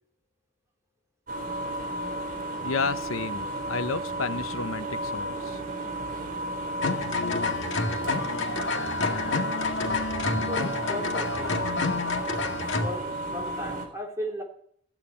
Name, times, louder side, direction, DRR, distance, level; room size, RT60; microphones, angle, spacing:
sound 1, 1.3-13.9, right 1 dB, 45° right, 4.1 m, -33 dB
voice 1, 2.6-5.6, left 4 dB, 90° left, 11 dB, 0.9 m, -31 dB
sound 2, 6.8-12.9, left 3 dB, 65° left, 2.0 m, -29 dB
voice 2, 9.7-11.7 12.8-14.4, equal, 15° right, -1 dB, 3.8 m, -37 dB
15.5 x 8.9 x 10.0 m, 0.64 s
head